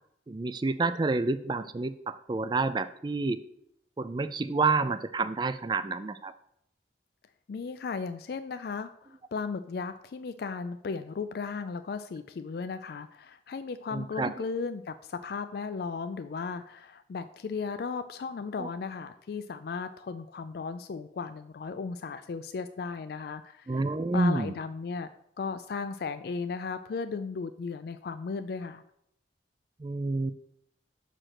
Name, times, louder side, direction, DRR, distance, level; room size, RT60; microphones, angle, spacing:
voice 1, 0.3-3.4 4.0-6.3 13.9-14.4 18.6-18.7 23.7-24.6 29.8-30.3, right 3 dB, 25° right, 12 dB, 0.3 m, -29 dB
voice 2, 7.5-23.8 24.1-25.1 25.4-28.8, left 5 dB, 55° left, 10 dB, 0.3 m, -36 dB
6.3 x 5.0 x 5.8 m, 0.75 s
head